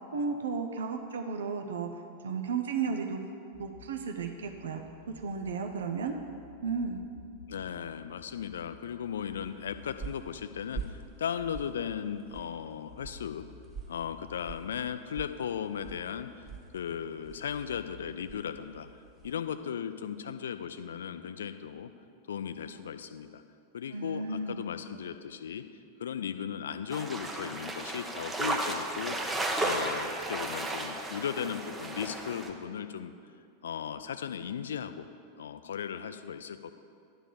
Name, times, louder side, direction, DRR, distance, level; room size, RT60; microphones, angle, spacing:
voice 1, 0.1-1.9 2.2-3.2 3.6-4.8 5.2-6.1 6.6-7.0 23.9-24.7, right 5 dB, 65° right, 4 dB, 0.6 m, -33 dB
sound 1, 3.5-19.5, left 4 dB, 85° left, 1.1 m, -55 dB
voice 2, 7.5-13.5 13.9-16.5 16.7-21.9 22.3-23.4 23.7-25.6 26.0-33.1 33.6-35.1 35.4-36.7, left 8 dB, 65° left, 11 dB, 0.4 m, -37 dB
sound 2, 9.4-19.5, right 6 dB, 25° right, 1.5 m, -47 dB
sound 3, 26.9-32.5, right 2 dB, 10° right, 0.8 m, -34 dB
11.0 x 3.7 x 6.8 m, 2.4 s
figure-of-eight pair, 90°, 0 cm